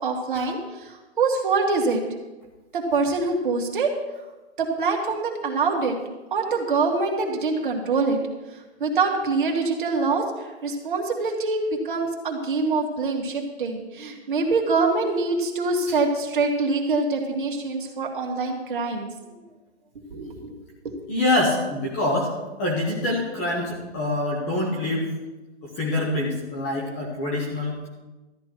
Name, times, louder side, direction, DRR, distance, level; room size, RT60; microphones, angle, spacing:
voice 1, 0.0-2.0 2.7-3.9 4.6-5.9 6.3-8.2 8.8-19.4 20.1-20.6 20.8-20.9, right 4 dB, 45° right, 1 dB, 2.1 m, -25 dB
voice 2, 21.1-22.3 22.6-25.1 25.6-27.9, left 1 dB, 10° left, -2 dB, 0.9 m, -25 dB
13.0 x 10.5 x 4.6 m, 1.1 s
hypercardioid pair, 175°, 34 cm